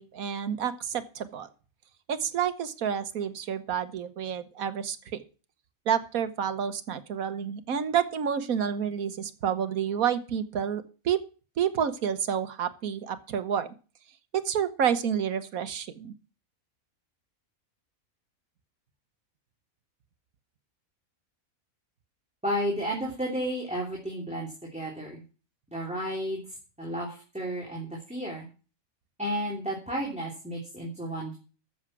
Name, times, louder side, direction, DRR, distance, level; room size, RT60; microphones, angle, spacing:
voice 1, 0.0-1.5 2.1-5.2 5.9-11.2 11.6-13.7 14.3-16.1, right 8 dB, 75° right, 11 dB, 1.5 m, -29 dB
voice 2, 22.4-25.2 25.7-26.4 26.8-28.4 29.2-31.4, equal, 5° right, -3 dB, 3.1 m, -32 dB
13.5 x 7.3 x 6.1 m, 0.36 s
omnidirectional pair, 1.5 m